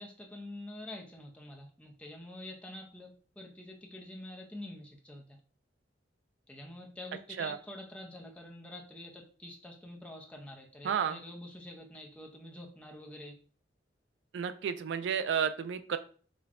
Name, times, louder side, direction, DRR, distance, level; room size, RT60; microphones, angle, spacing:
voice 1, 0.0-5.4 6.5-13.4, left 1 dB, 5° left, 0 dB, 0.5 m, -47 dB
voice 2, 10.8-11.2 14.3-16.0, right 7 dB, 70° right, 11 dB, 0.3 m, -31 dB
5.0 x 2.2 x 2.4 m, 0.41 s
head